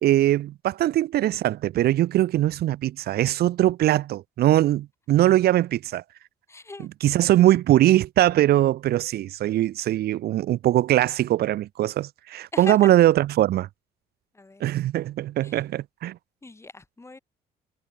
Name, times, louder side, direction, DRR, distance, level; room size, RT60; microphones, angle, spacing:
voice 1, 0.0-6.0 7.0-13.7 14.6-16.2, right 14 dB, 70° right, 2.3 m, -21 dB
voice 2, 6.5-6.9 12.5-12.9 14.3-14.7 15.4-15.6 16.4-17.2, left 3 dB, 15° left, 7.8 m, -39 dB
cardioid pair, 110°, 17 cm